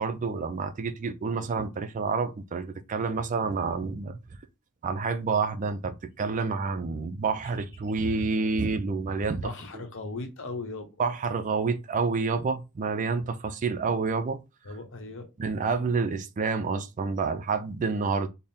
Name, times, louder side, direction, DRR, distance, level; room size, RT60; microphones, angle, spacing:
voice 1, 0.0-4.2 4.8-9.4 11.0-14.4 15.4-18.3, right 4 dB, 35° right, 0.3 m, -28 dB
voice 2, 9.4-10.9 14.6-15.3, left 3 dB, 60° left, 0.8 m, -37 dB
3.6 x 2.0 x 4.1 m
head